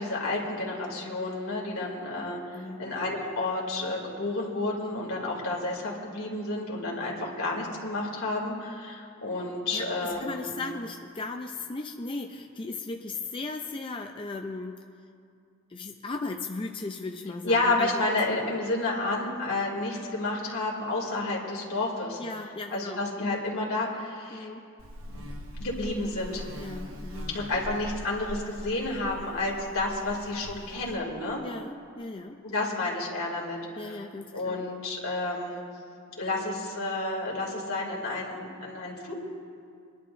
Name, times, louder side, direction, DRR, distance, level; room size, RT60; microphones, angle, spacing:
voice 1, 0.0-10.6 17.4-22.2 22.7-24.5 25.1-25.2 25.6-26.5 27.3-31.5 32.4-34.0 34.3-35.6 36.2-39.1, left 2 dB, 80° left, -2 dB, 2.5 m, -30 dB
voice 2, 2.5-2.9 9.7-14.8 15.7-18.2 22.2-23.4 24.3-24.6 26.6-27.4 31.4-32.8 33.8-34.6, left 3 dB, 25° left, 3 dB, 0.4 m, -37 dB
Buzz, 24.8-31.0, equal, 70° right, 1.2 m, -41 dB
26.5 x 11.0 x 2.6 m, 2.3 s
head